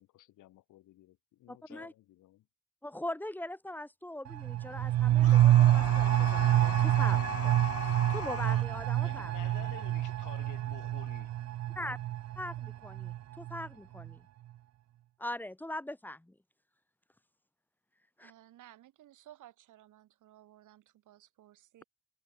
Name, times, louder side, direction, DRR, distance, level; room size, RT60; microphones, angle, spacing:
voice 1, 0.0-2.4 9.0-11.3, left 15 dB, 85° left, 6.0 m, -52 dB
voice 2, 1.5-1.9 2.8-9.3 9.6-9.7 11.7-12.0 12.4-14.3 15.2-16.3 18.2-18.3, left 1 dB, 5° left, 1.2 m, -41 dB
sound 1, 4.3-13.7 14.0-14.1, right 13 dB, 60° right, 0.6 m, -27 dB
sound 2, 5.2-8.7, left 9 dB, 50° left, 1.6 m, -40 dB
voice 3, 18.2-21.8, right 13 dB, 80° right, 6.2 m, -57 dB
cardioid pair, 90°, 30 cm